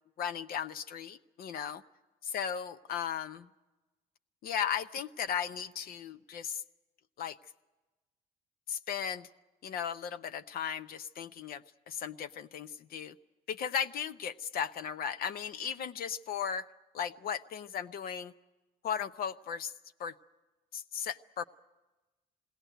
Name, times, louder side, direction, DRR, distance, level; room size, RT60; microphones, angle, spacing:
voice 1, 0.2-1.8 2.2-3.5 4.4-6.6 7.2-7.4 8.7-9.3 9.6-13.1 13.5-16.7 16.9-18.3 18.8-19.7 20.0-20.1 20.7-21.4, left 8 dB, 60° left, 10 dB, 0.7 m, -36 dB
20.5 x 17.5 x 9.1 m, 1.1 s
cardioid pair, 110°, 17 cm